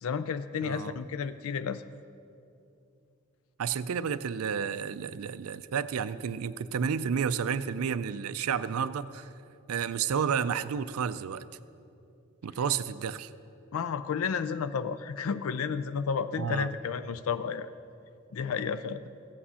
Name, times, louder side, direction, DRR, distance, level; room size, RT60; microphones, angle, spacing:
voice 1, 0.0-1.8 13.7-17.7 18.3-19.1, left 6 dB, 75° left, 13 dB, 0.4 m, -32 dB
voice 2, 0.6-1.0 3.6-9.3 9.7-11.4 12.4-13.3 16.4-16.7, right 7 dB, 80° right, 14 dB, 0.4 m, -31 dB
15.0 x 8.6 x 5.6 m, 2.6 s
head